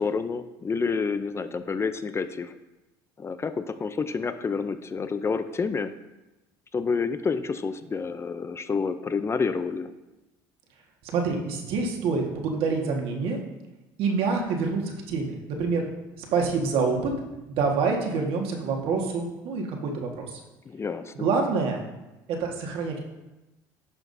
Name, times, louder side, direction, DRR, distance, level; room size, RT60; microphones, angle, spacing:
voice 1, 0.0-2.5 3.2-5.9 6.7-9.9 20.7-21.3, left 5 dB, 25° left, 11 dB, 0.5 m, -29 dB
voice 2, 11.1-13.4 14.0-15.8 16.2-17.1 17.5-20.3 21.2-21.8 22.3-23.0, right 4 dB, 70° right, 1 dB, 1.6 m, -26 dB
10.5 x 5.9 x 2.7 m, 1.0 s
supercardioid pair, 90°, 10 cm